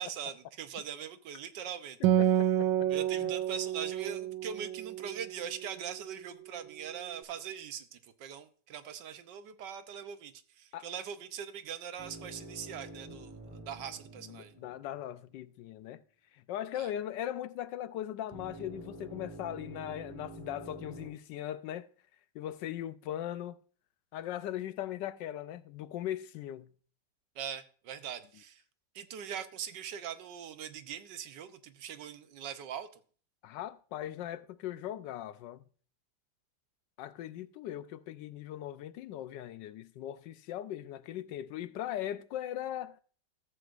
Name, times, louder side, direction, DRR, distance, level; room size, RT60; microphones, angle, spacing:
voice 1, 0.0-2.0 2.9-14.5 16.7-16.9 27.3-28.6 28.9-33.0, right 8 dB, 75° right, 1.4 m, -41 dB
Acoustic guitar, 2.0-5.8, right 11 dB, 90° right, 1.3 m, -29 dB
voice 2, 2.2-2.9 3.2-3.3 10.7-10.9 14.3-16.0 16.3-21.9 22.3-23.6 24.1-26.7 33.4-35.6 37.0-43.0, left 12 dB, 80° left, 1.3 m, -39 dB
sound 1, 12.0-15.3 18.3-21.1, right 2 dB, 10° right, 3.7 m, -48 dB
14.0 x 7.7 x 2.5 m
omnidirectional pair, 1.9 m